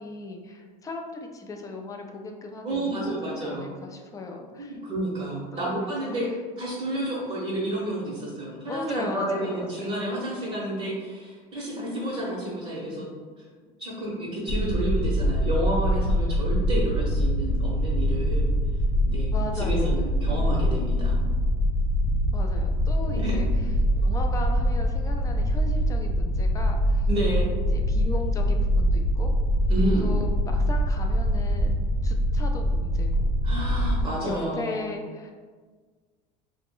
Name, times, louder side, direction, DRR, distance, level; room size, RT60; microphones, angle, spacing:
voice 1, 0.0-4.8 5.5-6.2 8.7-10.0 19.3-20.1 22.3-23.5 24.0-27.1 27.7-29.3 30.0-33.3 34.2-35.3, left 2 dB, 20° left, 3 dB, 0.4 m, -37 dB
voice 2, 2.6-3.7 4.6-6.3 6.6-13.1 13.8-18.5 19.0-21.2 23.1-23.4 27.1-27.5 29.7-30.1 33.4-34.8, right 1 dB, 30° right, -5 dB, 0.7 m, -30 dB
sound 1, 14.5-34.0, equal, 55° left, 0.7 m, -24 dB
2.3 x 2.0 x 3.6 m, 1.5 s
supercardioid pair, 100°, 19 cm